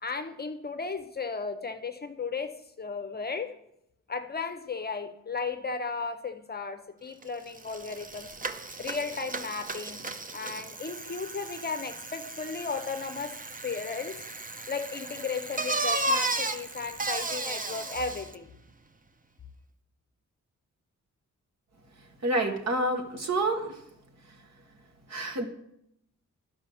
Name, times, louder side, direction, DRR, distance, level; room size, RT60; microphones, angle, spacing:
voice 1, 0.0-3.5 4.1-8.3 8.8-10.0 10.3-13.4 13.6-14.2 14.7-18.5, left 4 dB, 30° left, 8 dB, 0.8 m, -35 dB
Bicycle, 7.2-7.3 7.6-18.4, right 2 dB, 25° right, 0.7 m, -34 dB
voice 2, 22.2-23.8 25.1-25.5, right 2 dB, 55° right, 4 dB, 1.6 m, -28 dB
11.5 x 5.6 x 7.1 m, 0.77 s
wide cardioid pair, 110°, 31 cm